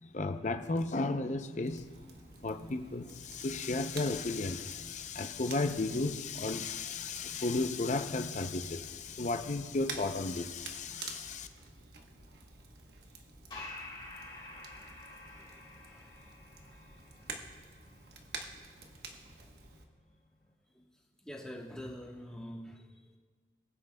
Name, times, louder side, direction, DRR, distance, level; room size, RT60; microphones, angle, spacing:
voice 1, 0.0-2.1 2.4-11.5, left 3 dB, 40° left, 8 dB, 0.6 m, -34 dB
Crackle, 1.6-19.8, right 4 dB, 60° right, 1.1 m, -50 dB
sound 1, 13.5-20.5, left 2 dB, 25° left, 1.8 m, -51 dB
voice 2, 15.3-16.7 20.7-20.8 21.2-23.2, equal, 5° left, -1 dB, 1.2 m, -47 dB
20.5 x 9.6 x 2.3 m, 1.5 s
head